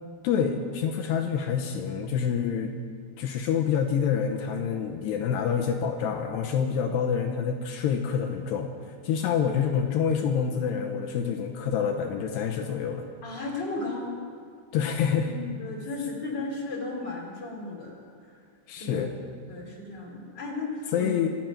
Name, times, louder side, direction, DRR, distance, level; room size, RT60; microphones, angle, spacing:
voice 1, 0.2-2.7 3.2-8.7 9.0-13.0 14.7-15.3 18.7-19.1 20.9-21.4, left 7 dB, 75° left, 4 dB, 2.7 m, -27 dB
voice 2, 13.2-14.2 15.2-18.0 18.8-19.1 19.5-21.1, left 3 dB, 30° left, -1 dB, 2.3 m, -35 dB
25.5 x 9.2 x 5.9 m, 2.4 s
omnidirectional pair, 5.4 m